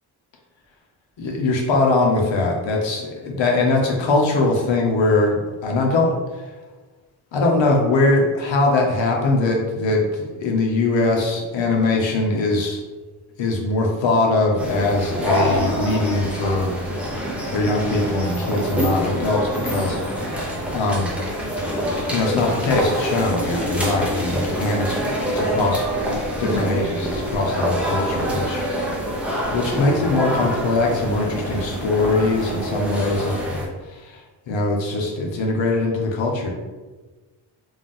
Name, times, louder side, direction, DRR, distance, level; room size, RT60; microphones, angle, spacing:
voice 1, 1.2-6.1 7.3-12.8 13.4-16.8 17.5-20.0 20.3-21.1 22.1-25.9 26.4-28.6 29.5-33.6 33.9-34.2 34.5-36.5, left 2 dB, 65° left, 0 dB, 1.0 m, -21 dB
sound 1, 14.6-33.7, equal, 5° right, 0.7 m, -25 dB
3.5 x 2.6 x 3.7 m, 1.3 s
cardioid pair, 95°, 48 cm